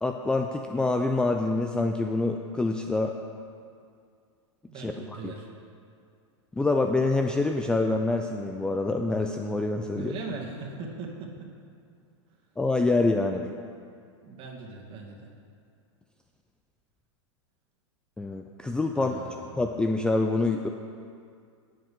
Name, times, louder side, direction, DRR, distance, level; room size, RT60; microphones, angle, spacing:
voice 1, 0.0-3.1 4.8-5.3 6.5-10.1 12.6-13.5 18.2-20.7, left 2 dB, 5° left, 4 dB, 0.4 m, -26 dB
voice 2, 4.7-5.5 9.9-11.3 14.2-15.3 19.0-19.5, right 3 dB, 35° right, -1 dB, 2.2 m, -39 dB
20.0 x 7.8 x 3.7 m, 2.3 s
hypercardioid pair, 130°, 16 cm